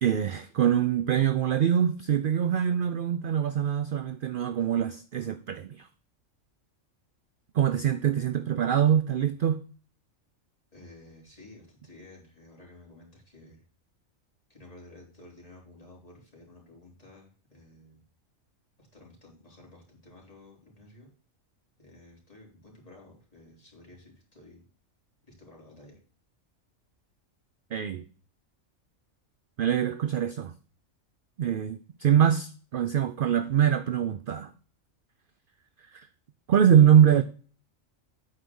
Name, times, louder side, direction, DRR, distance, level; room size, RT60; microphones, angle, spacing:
voice 1, 0.0-5.9 7.5-9.6 27.7-28.0 29.6-30.5 31.4-34.5 35.9-36.1 36.5-37.2, right 9 dB, 60° right, 0.5 m, -24 dB
voice 2, 10.7-13.6 14.5-18.0 18.8-21.1 21.8-24.6 25.2-26.0, left 2 dB, 25° left, 3.6 m, -52 dB
8.7 x 5.0 x 6.1 m
omnidirectional pair, 1.4 m